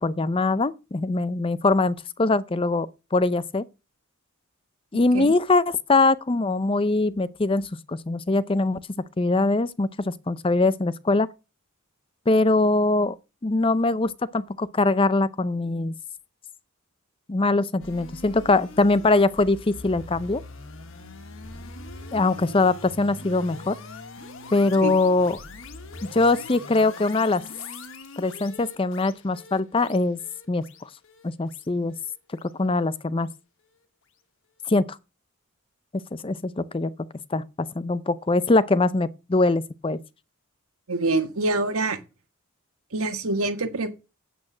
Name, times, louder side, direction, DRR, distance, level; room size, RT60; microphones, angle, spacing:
voice 1, 0.0-3.6 4.9-8.8 9.2-11.3 12.3-13.2 13.4-15.9 17.3-20.4 22.1-23.8 24.5-25.4 26.0-27.4 28.2-30.2 30.5-30.6 31.2-31.9 32.6-33.3 34.7-34.8 36.1-36.9 37.3-40.0, left 3 dB, 25° left, 0.5 m, -22 dB
sound 1, 17.8-33.0, left 2 dB, 65° left, 1.4 m, -42 dB
voice 2, 40.9-42.0 42.9-43.9, right 2 dB, 85° right, 1.6 m, -25 dB
8.7 x 8.1 x 6.1 m
head